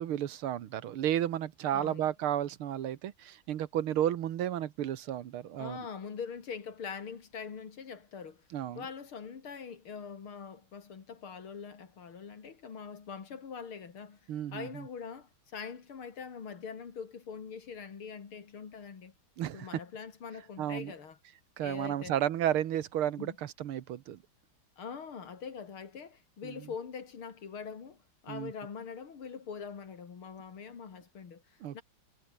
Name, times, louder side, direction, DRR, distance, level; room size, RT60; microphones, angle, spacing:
voice 1, 0.0-5.9 8.5-8.8 14.3-14.9 19.4-19.7 20.6-20.9 21.6-24.2 26.4-26.7 28.3-28.5 31.6-31.8, right 11 dB, 90° right, 2.0 m, -33 dB
voice 2, 1.7-2.1 5.6-8.4 8.8-14.2 14.5-19.1 19.5-21.2 21.6-22.1 23.2-23.3 24.8-31.8, left 6 dB, 85° left, 3.5 m, -43 dB
omnidirectional pair, 2.3 m